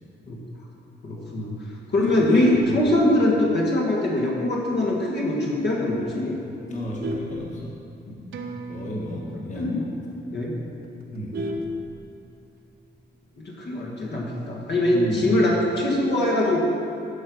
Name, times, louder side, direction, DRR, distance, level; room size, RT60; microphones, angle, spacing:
voice 1, 1.0-1.5 1.9-6.4 9.5-9.8 10.3-10.5 13.5-16.6, left 1 dB, 65° left, -3 dB, 1.8 m, -22 dB
voice 2, 1.9-2.9 6.7-7.7 8.1-8.2 8.7-9.7 11.1-11.4 14.9-15.3, left 1 dB, 40° left, -3 dB, 1.8 m, -32 dB
Vehicle horn car horn honking, 2.3-3.6 4.0-4.3 4.6-4.7 5.1-5.2 5.5-5.9 6.4-8.3 8.6-8.7 9.0-9.1 9.5-9.6 10.0-10.1 10.3-12.4 13.6-14.0, equal, 55° right, 0.9 m, -34 dB
sound 1, 8.3-13.3 13.6-13.7, right 3 dB, 90° right, 1.1 m, -42 dB
12.0 x 5.3 x 6.2 m, 2.6 s
wide cardioid pair, 130°, 19 cm